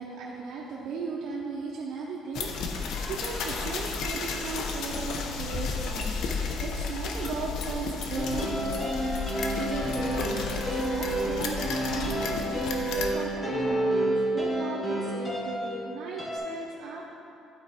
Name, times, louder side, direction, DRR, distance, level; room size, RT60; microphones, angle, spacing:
voice 1, 0.0-17.0, right 4 dB, 65° right, -4 dB, 0.9 m, -37 dB
sound 1, 2.3-13.1, left 4 dB, 70° left, 0.8 m, -33 dB
sound 2, 8.1-16.4, right 1 dB, 15° left, 1.9 m, -30 dB
11.5 x 4.5 x 4.3 m, 2.9 s
cardioid pair, 120°, 0 cm